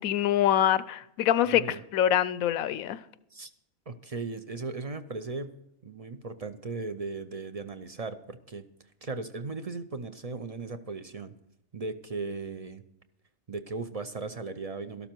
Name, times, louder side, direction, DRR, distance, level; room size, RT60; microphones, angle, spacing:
voice 1, 0.0-3.0, left 11 dB, 85° left, 1.1 m, -25 dB
voice 2, 1.4-1.8 3.3-3.5 3.9-5.5 5.8-8.6 9.0-11.4 11.7-12.8 13.5-15.1, right 3 dB, 40° right, 0.5 m, -37 dB
13.0 x 12.0 x 4.5 m
omnidirectional pair, 1.4 m